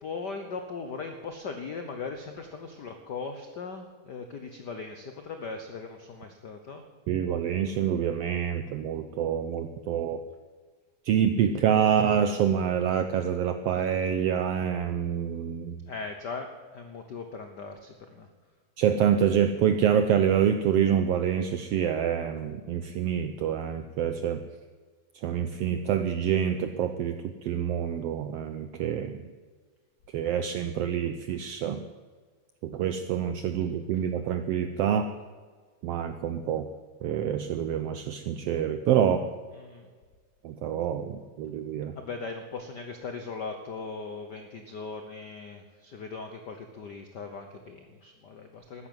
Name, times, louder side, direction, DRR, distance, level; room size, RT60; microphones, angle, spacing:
voice 1, 0.0-6.8 15.9-18.3 39.6-39.9 41.9-48.9, left 4 dB, 75° left, 6 dB, 0.9 m, -39 dB
voice 2, 7.1-10.2 11.1-15.8 18.8-24.4 25.2-27.2 27.4-29.2 30.1-31.8 32.6-35.1 35.8-36.7 37.0-39.3 40.4-41.9, right 8 dB, 80° right, 8 dB, 1.4 m, -26 dB
13.5 x 9.9 x 9.4 m, 1.5 s
omnidirectional pair, 3.4 m